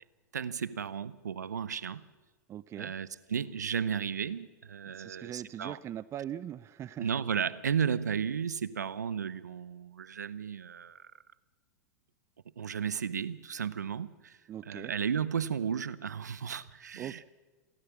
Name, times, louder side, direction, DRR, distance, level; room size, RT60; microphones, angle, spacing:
voice 1, 0.3-2.0 2.8-5.8 7.0-11.1 12.6-14.4 14.7-17.3, right 7 dB, 85° right, 0.8 m, -34 dB
voice 2, 2.5-2.9 4.9-7.1 14.5-14.9 17.0-17.3, right 11 dB, 30° right, 0.7 m, -41 dB
28.0 x 13.5 x 7.2 m
hypercardioid pair, 95°, 9 cm